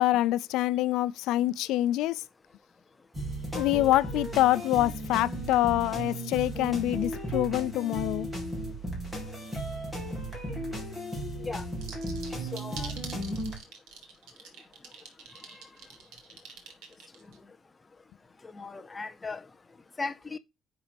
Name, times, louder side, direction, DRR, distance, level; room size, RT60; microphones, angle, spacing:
voice 1, 0.0-2.2 3.5-8.3, left 15 dB, 75° left, 0.4 m, -26 dB
sound 1, 3.1-13.6, right 1 dB, 5° right, 2.8 m, -35 dB
sound 2, 11.8-17.4, right 6 dB, 80° right, 2.8 m, -44 dB
voice 2, 12.5-12.9 18.4-19.4 20.0-20.4, left 3 dB, 15° left, 0.6 m, -37 dB
10.0 x 4.1 x 5.1 m
cardioid pair, 180°, 0 cm